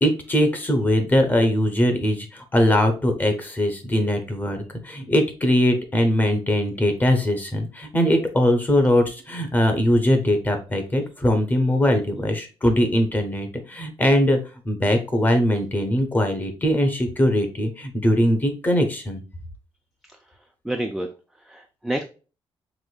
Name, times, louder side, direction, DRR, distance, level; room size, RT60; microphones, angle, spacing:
voice 1, 0.0-14.4 14.6-19.2, left 1 dB, 20° left, 5 dB, 0.8 m, -21 dB
voice 2, 20.6-21.1 21.4-22.0, right 1 dB, ahead, 3 dB, 0.3 m, -28 dB
5.0 x 3.6 x 2.3 m, 0.34 s
wide cardioid pair, 180°, 10 cm